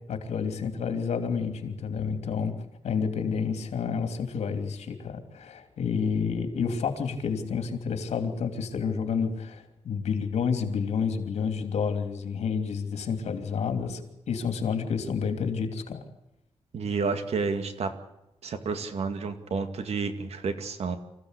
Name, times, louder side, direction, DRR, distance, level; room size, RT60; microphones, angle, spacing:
voice 1, 0.1-2.5 2.8-16.0, left 6 dB, 85° left, 6 dB, 3.1 m, -29 dB
voice 2, 16.7-17.9 18.4-21.0, right 4 dB, 70° right, 8 dB, 2.2 m, -30 dB
26.0 x 15.5 x 8.3 m, 0.91 s
wide cardioid pair, 145°, 11 cm